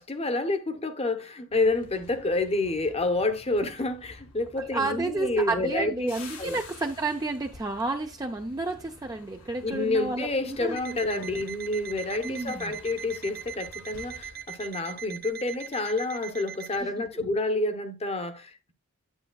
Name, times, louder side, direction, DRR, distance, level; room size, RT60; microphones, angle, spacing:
voice 1, 0.0-6.1 6.4-6.6 9.6-18.7, left 2 dB, 30° left, 0.9 m, -29 dB
sound 1, 1.5-15.5 15.8-16.1, left 3 dB, 80° left, 1.9 m, -50 dB
voice 2, 4.7-10.8 11.2-11.4 12.2-12.7 16.8-16.9, right 2 dB, 20° right, 0.5 m, -31 dB
Alarm, 10.8-16.8, right 8 dB, 50° right, 0.8 m, -41 dB
9.0 x 8.7 x 2.3 m
head